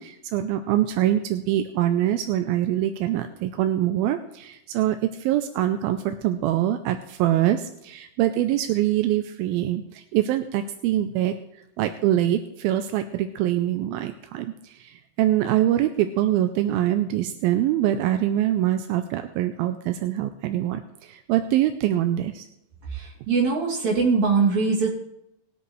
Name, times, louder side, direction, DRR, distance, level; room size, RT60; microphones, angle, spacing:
voice 1, 0.0-11.3 11.8-22.5, right 12 dB, 85° right, 8 dB, 2.4 m, -24 dB
voice 2, 22.9-24.9, right 4 dB, 50° right, -3 dB, 4.0 m, -22 dB
20.0 x 8.0 x 3.2 m, 0.82 s
omnidirectional pair, 4.3 m